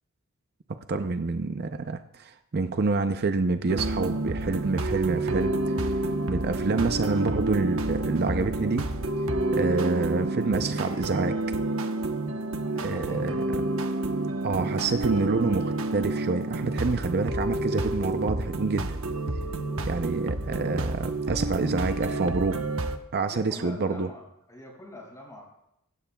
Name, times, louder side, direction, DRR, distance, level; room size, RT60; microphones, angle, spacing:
voice 1, 0.9-5.5 5.8-5.9 6.3-8.9 9.5-11.4 12.8-13.3 14.4-19.0 19.9-22.6 23.1-24.1, right 3 dB, 45° right, 8 dB, 0.6 m, -27 dB
sound 1, 3.7-23.0, right 2 dB, 65° right, 1.1 m, -29 dB
voice 2, 12.6-13.3 23.3-25.4, left 1 dB, 15° left, -2 dB, 6.3 m, -44 dB
25.0 x 13.0 x 2.3 m, 0.78 s
head